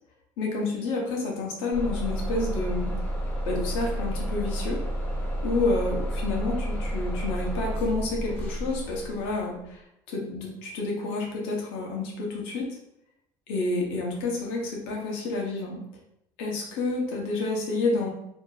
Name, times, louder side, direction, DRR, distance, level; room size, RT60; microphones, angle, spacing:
voice 1, 0.4-2.9 3.5-4.8 5.4-9.8 10.1-12.7 13.5-15.8 16.4-18.1, left 3 dB, 85° left, -1 dB, 1.0 m, -29 dB
Bus / Engine starting, 1.7-9.5, right 1 dB, 30° left, 1.4 m, -30 dB
3.0 x 2.5 x 3.9 m, 0.80 s
cardioid pair, 155°, 9 cm